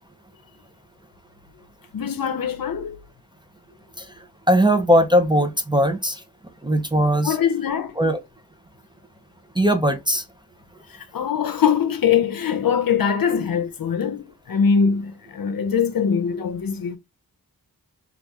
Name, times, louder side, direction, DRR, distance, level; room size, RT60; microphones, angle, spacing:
voice 1, 1.9-3.0 7.2-7.9 10.9-17.0, left 7 dB, 65° left, 0.7 m, -22 dB
voice 2, 4.5-6.2 6.6-7.4 8.0-8.2 9.6-10.2, equal, 15° right, 0.5 m, -19 dB
3.0 x 2.4 x 3.4 m
wide cardioid pair, 90°, 37 cm